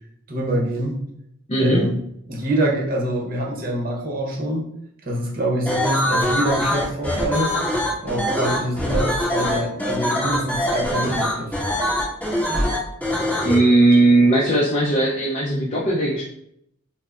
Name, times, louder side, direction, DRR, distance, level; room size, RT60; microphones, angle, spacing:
voice 1, 0.3-1.0 1.6-1.9 2.3-4.7 5.0-7.5 8.0-11.5 13.9-14.0, right 1 dB, 40° right, -2 dB, 0.8 m, -25 dB
voice 2, 1.5-1.9 13.4-16.2, right 2 dB, 30° left, -6 dB, 0.5 m, -17 dB
sound 1, 5.7-13.5, left 1 dB, 10° left, 1.4 m, -23 dB
5.2 x 2.0 x 2.4 m, 0.75 s
head